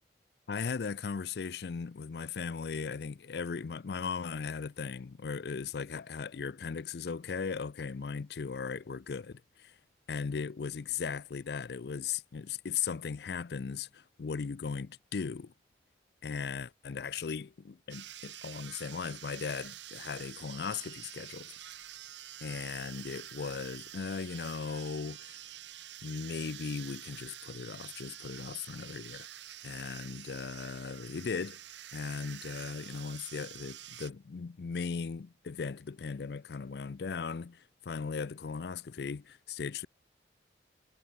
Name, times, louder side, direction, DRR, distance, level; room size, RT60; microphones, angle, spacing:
voice 1, 0.5-9.7 10.1-15.5 16.2-21.6 22.4-25.3 26.0-29.3 29.6-31.6 31.9-39.9, left 5 dB, 65° left, 0.4 m, -38 dB
sound 1, 17.9-34.1, right 12 dB, 90° right, 2.0 m, -47 dB
head